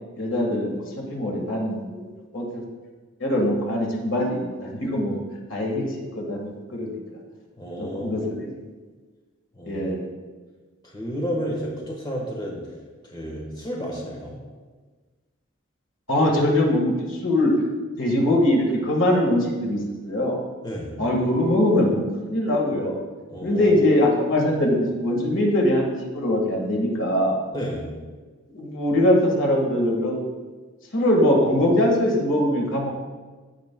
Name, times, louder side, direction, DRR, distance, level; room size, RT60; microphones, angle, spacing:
voice 1, 0.2-2.0 2.3-2.6 3.2-5.2 5.5-7.0 7.8-8.5 9.7-10.0 16.1-17.5 18.0-20.4 21.0-22.0 22.3-22.9 23.4-27.4 28.5-30.2 30.9-32.9, left 1 dB, 75° left, 0 dB, 1.6 m, -22 dB
voice 2, 7.6-8.3 9.5-9.9 10.8-12.6 13.0-14.4 20.6-20.9 23.3-23.8 27.5-27.9, equal, 20° left, -2 dB, 1.3 m, -31 dB
14.5 x 5.2 x 2.2 m, 1.4 s
head